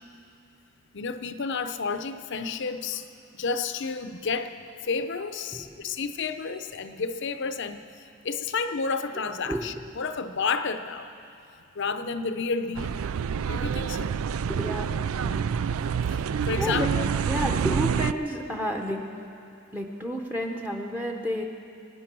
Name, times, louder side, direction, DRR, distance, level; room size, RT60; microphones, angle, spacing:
voice 1, 0.9-3.1 3.3-11.1 11.7-13.0 13.4-14.1 16.1-17.0, left 4 dB, 60° left, 10 dB, 0.7 m, -31 dB
voice 2, 5.5-6.0 9.5-9.8 14.5-15.6 16.6-16.9 17.3-19.0 19.7-21.4, equal, 10° right, 2 dB, 0.9 m, -31 dB
sound 1, 12.8-18.1, right 7 dB, 75° right, 0.4 m, -27 dB
24.0 x 9.4 x 6.1 m, 2.7 s
head